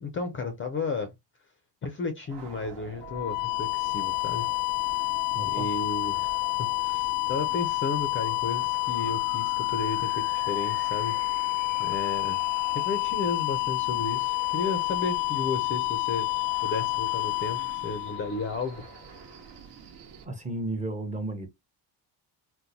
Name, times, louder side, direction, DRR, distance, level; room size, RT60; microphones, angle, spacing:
voice 1, 0.0-1.1 1.8-4.5 5.0-5.1 5.4-11.2 11.8-12.4 12.7-16.3 16.6-18.8, left 4 dB, 30° left, 0.4 m, -33 dB
sound 1, 2.2-20.2, right 6 dB, 70° right, 1.0 m, -47 dB
sound 2, 3.0-18.8, left 25 dB, 80° left, 0.5 m, -29 dB
voice 2, 5.3-5.7 20.2-21.5, right 2 dB, 15° right, 0.6 m, -33 dB
3.8 x 2.1 x 2.7 m
cardioid pair, 165°, 44 cm